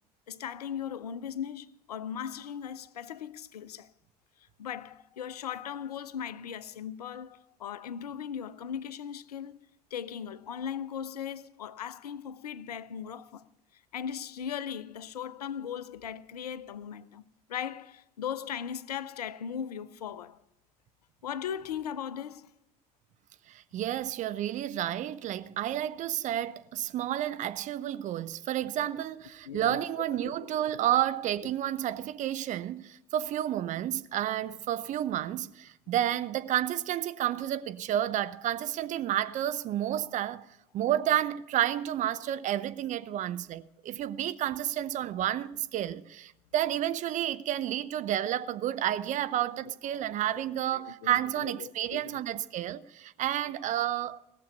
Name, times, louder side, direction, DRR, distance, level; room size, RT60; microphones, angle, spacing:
voice 1, 0.3-3.9 4.6-9.6 9.9-13.5 13.9-17.2 17.5-20.4 21.2-22.5 29.5-29.8 30.2-30.5 49.6-49.7 50.3-50.4 50.7-52.2, left 8 dB, 75° left, 0.5 m, -38 dB
voice 2, 23.5-40.5 40.7-54.2, right 12 dB, 40° right, 0.6 m, -31 dB
17.0 x 6.9 x 8.2 m
figure-of-eight pair, 65°, 20 cm